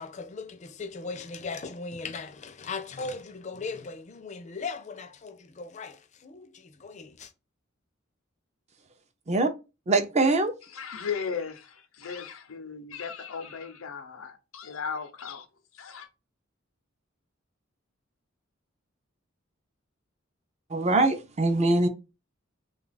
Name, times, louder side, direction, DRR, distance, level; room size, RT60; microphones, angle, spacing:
voice 1, 0.0-7.3, left 4 dB, 35° left, 0.5 m, -38 dB
voice 2, 9.9-10.5 20.7-21.9, right 2 dB, 35° right, 0.5 m, -23 dB
voice 3, 10.7-15.5 15.7-16.1, left 6 dB, 90° left, 0.6 m, -36 dB
3.2 x 2.3 x 3.9 m
head